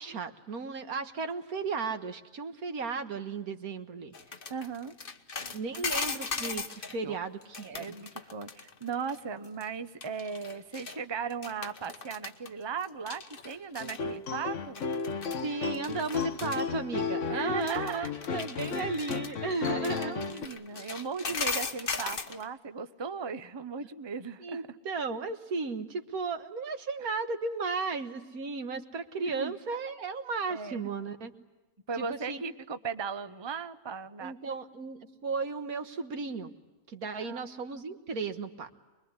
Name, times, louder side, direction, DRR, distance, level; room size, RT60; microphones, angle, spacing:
voice 1, 0.0-4.1 5.5-7.9 15.4-20.3 24.4-31.3 32.0-32.4 34.2-36.5 36.9-38.7, right 4 dB, 75° right, 8 dB, 1.9 m, -35 dB
sound 1, 4.1-7.0 7.4-9.2 9.4-9.6 10.0-11.0 11.3-12.5 12.8-14.0 14.8-15.5 15.7-16.6 17.6-22.5, left 4 dB, 40° left, 1.3 m, -38 dB
voice 2, 4.5-4.9 7.0-7.2 7.8-14.8 17.2-18.1 19.6-24.6 27.0-27.1 29.2-29.5 30.5-30.9 31.9-34.3 37.2-37.4, right 5 dB, 20° right, 10 dB, 0.8 m, -37 dB
sound 2, 13.8-20.5, left 5 dB, 55° left, 1.4 m, -34 dB
25.0 x 22.0 x 9.6 m, 1.1 s
omnidirectional pair, 1.6 m